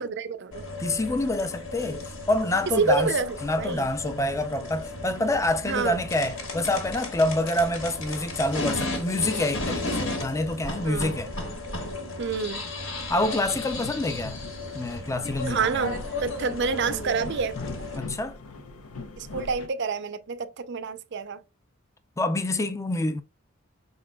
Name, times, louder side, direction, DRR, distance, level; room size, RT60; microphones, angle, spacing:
voice 1, 0.0-0.6 2.8-3.9 5.6-6.0 10.8-11.2 12.2-12.7 15.5-17.6 19.2-21.4, right 4 dB, 55° right, 0.5 m, -28 dB
sound 1, 0.5-18.0, left 2 dB, 60° left, 1.3 m, -34 dB
voice 2, 0.8-3.1 3.4-11.3 13.1-14.4 14.7-15.9 18.0-18.4 22.2-23.2, left 1 dB, 15° left, 0.4 m, -27 dB
sound 2, 13.2-19.7, left 3 dB, 80° left, 0.7 m, -41 dB
5.3 x 3.7 x 2.2 m
head